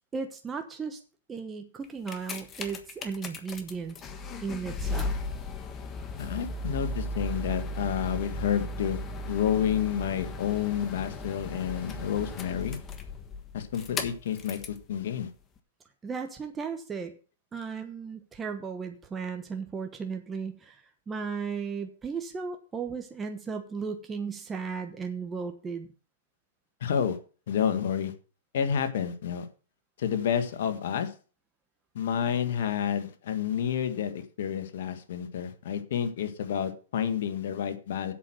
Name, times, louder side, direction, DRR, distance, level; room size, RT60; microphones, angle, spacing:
voice 1, 0.1-1.0 1.3-4.0 4.4-5.1 16.0-17.1 17.5-25.9, right 5 dB, 15° right, 5 dB, 1.1 m, -35 dB
sound 1, 1.8-14.8 15.6-15.7, left 2 dB, 25° left, 1.4 m, -36 dB
voice 2, 6.2-9.0 9.3-12.8 13.5-15.3 26.8-27.2 27.5-28.1 28.5-29.5 30.0-31.1 31.9-38.1, left 8 dB, 65° left, 9 dB, 1.6 m, -29 dB
8.1 x 6.2 x 7.6 m, 0.37 s
hypercardioid pair, 125°, 0 cm